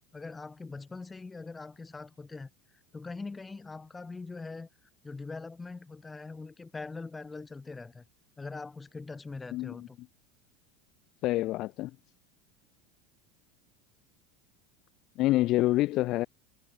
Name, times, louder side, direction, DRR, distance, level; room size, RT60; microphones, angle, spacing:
voice 1, 0.1-2.5 2.9-4.7 5.0-8.0 8.4-10.0, left 3 dB, 15° left, 4.1 m, -42 dB
voice 2, 9.5-9.9 11.2-11.9 15.2-16.3, left 17 dB, 50° left, 1.0 m, -27 dB
supercardioid pair, 110°, 0 cm